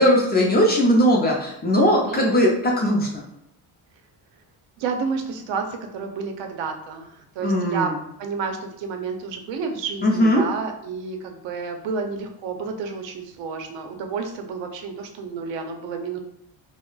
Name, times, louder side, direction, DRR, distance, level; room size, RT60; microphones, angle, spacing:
voice 1, 0.0-3.2 7.4-8.0 10.0-10.4, equal, 25° left, -2 dB, 0.4 m, -19 dB
voice 2, 4.8-7.9 8.2-16.2, right 5 dB, 85° right, 5 dB, 0.6 m, -30 dB
2.2 x 2.0 x 3.8 m, 0.79 s
cardioid pair, 175°, 44 cm